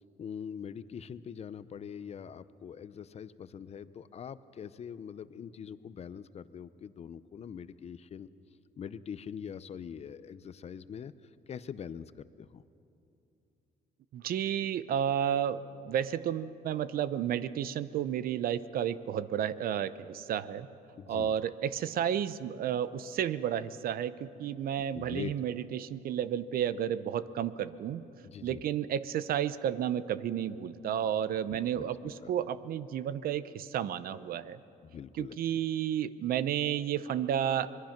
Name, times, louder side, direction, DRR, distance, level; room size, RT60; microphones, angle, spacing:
voice 1, 0.2-8.3 8.8-12.6 20.9-21.3 24.8-25.3 28.2-28.6 31.5-32.3 34.8-35.4, left 7 dB, 40° left, 15 dB, 0.7 m, -43 dB
voice 2, 14.1-20.7 21.1-28.0 28.4-34.6 35.2-37.7, right 9 dB, 60° right, 15 dB, 0.7 m, -32 dB
25.5 x 21.0 x 5.9 m, 2.7 s
cardioid pair, 110°, 17 cm